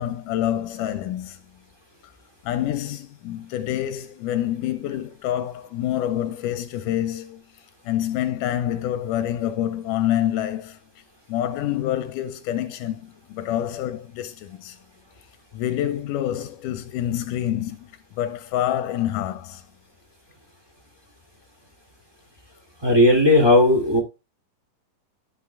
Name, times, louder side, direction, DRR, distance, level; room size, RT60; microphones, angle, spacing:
voice 1, 0.0-1.4 2.5-7.4 7.9-10.8 11.3-14.8 15.5-17.9 18.2-19.6, left 12 dB, 85° left, 2.2 m, -27 dB
voice 2, 22.8-24.0, left 1 dB, 10° right, 2.0 m, -16 dB
13.0 x 5.5 x 2.3 m
omnidirectional pair, 3.8 m